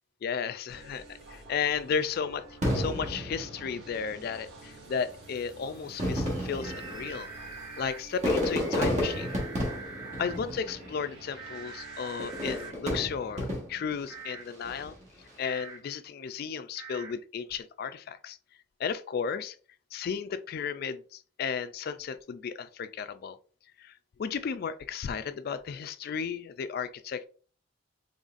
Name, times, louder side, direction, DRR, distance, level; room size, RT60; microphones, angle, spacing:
voice 1, 0.2-2.4 2.7-7.3 7.8-9.4 10.2-15.0 15.4-18.4 18.8-19.6 19.9-23.4 23.8-23.9 24.2-27.3, left 6 dB, 50° left, 0.3 m, -34 dB
sound 1, 0.7-12.7, right 2 dB, 60° right, 1.5 m, -51 dB
Fireworks, 2.6-4.2 5.1-5.2 5.8-11.1 12.2-14.0 14.5-15.0, left 1 dB, 40° right, 1.3 m, -32 dB
sound 2, 6.6-8.0 9.0-10.4 11.3-12.7 14.1-14.4 15.4-15.8 16.7-17.1, right 5 dB, 15° right, 0.9 m, -43 dB
3.9 x 3.5 x 2.5 m
head